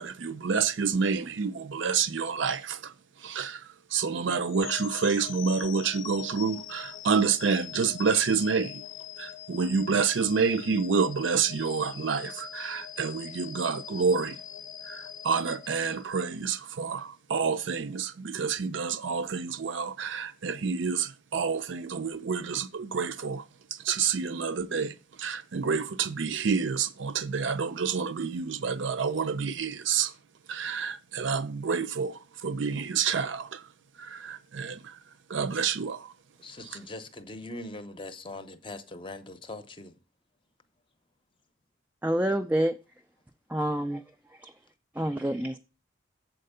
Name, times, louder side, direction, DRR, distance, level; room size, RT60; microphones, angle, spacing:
voice 1, 0.0-2.9 3.2-8.8 9.2-14.4 14.9-23.4 23.7-30.1 30.5-33.6 34.0-35.0 35.3-36.1, right 5 dB, 65° right, 0.5 m, -28 dB
sound 1, 4.4-16.5, left 11 dB, 70° left, 0.5 m, -43 dB
voice 2, 36.4-39.9, left 2 dB, 25° left, 0.7 m, -41 dB
voice 3, 42.0-42.8 43.5-44.0 44.3-44.5 44.9-45.6, right 1 dB, 10° right, 0.3 m, -27 dB
7.6 x 4.4 x 6.7 m
head